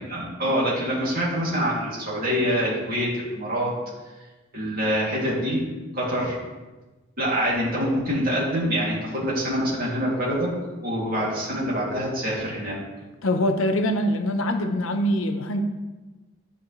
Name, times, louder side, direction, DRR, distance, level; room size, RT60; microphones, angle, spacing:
voice 1, 0.1-3.1 3.3-3.7 4.5-5.6 5.9-6.4 7.2-10.5 10.8-12.8, equal, 45° right, -6 dB, 2.5 m, -25 dB
voice 2, 13.2-15.6, equal, 80° left, 6 dB, 0.8 m, -23 dB
11.5 x 5.2 x 3.1 m, 1.2 s
head